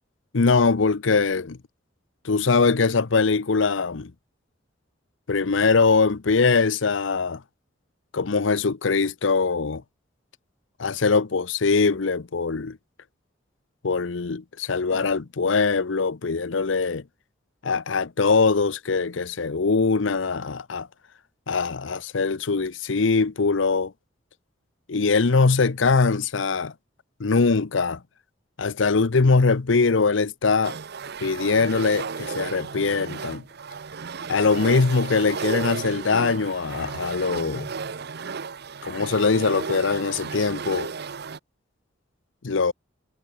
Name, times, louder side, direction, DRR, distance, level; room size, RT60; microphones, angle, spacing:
voice 1, 0.3-1.6 2.2-4.1 5.3-7.4 8.1-9.8 10.8-12.8 13.8-17.0 17.6-20.9 21.5-23.9 24.9-26.7 27.2-28.0 28.6-30.8 31.2-33.4 34.3-37.7 38.8-40.9 42.4-42.7, left 4 dB, 75° left, 0.7 m, -22 dB
sound 1, 30.6-41.4, right 5 dB, 55° right, 0.8 m, -34 dB
head